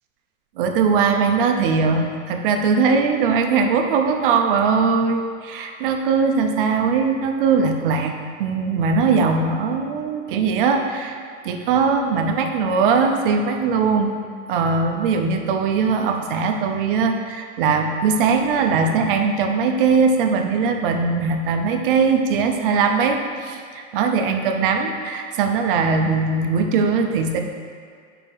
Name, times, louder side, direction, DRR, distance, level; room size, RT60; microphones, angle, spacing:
voice 1, 0.6-11.2 11.4-14.2 14.5-27.4, right 5 dB, 45° right, 4 dB, 0.5 m, -20 dB
4.9 x 4.2 x 5.5 m, 2.1 s
supercardioid pair, 160°, 40 cm